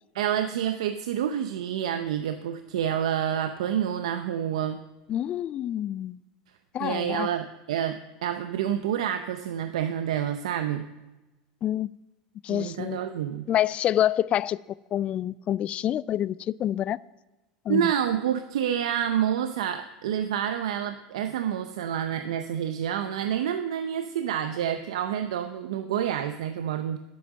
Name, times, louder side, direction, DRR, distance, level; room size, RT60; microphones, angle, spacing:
voice 1, 0.1-4.8 6.8-10.9 12.5-13.5 17.7-27.0, right 9 dB, 85° right, 0.6 m, -28 dB
voice 2, 5.1-6.2 6.7-7.3 11.6-11.9 12.4-13.0 13.5-14.6 14.9-17.0 17.7-17.9, left 11 dB, 40° left, 0.3 m, -27 dB
10.0 x 7.7 x 6.4 m
supercardioid pair, 105°, 3 cm